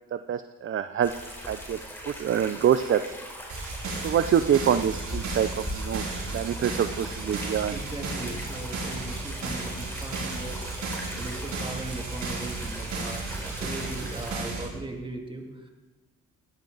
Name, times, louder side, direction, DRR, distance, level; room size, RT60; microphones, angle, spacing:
voice 1, 0.1-1.1 1.5-3.1 4.0-6.0 6.3-7.8, right 9 dB, 45° right, 11 dB, 0.6 m, -25 dB
sound 1, 1.0-14.4, equal, 5° left, 4.3 m, -40 dB
sound 2, 3.5-14.7, right 3 dB, 65° right, 5.6 m, -34 dB
voice 2, 7.7-10.9 11.1-15.7, right 2 dB, 15° right, 1 dB, 2.7 m, -38 dB
17.0 x 14.5 x 4.1 m, 1.2 s
cardioid pair, 90°, 30 cm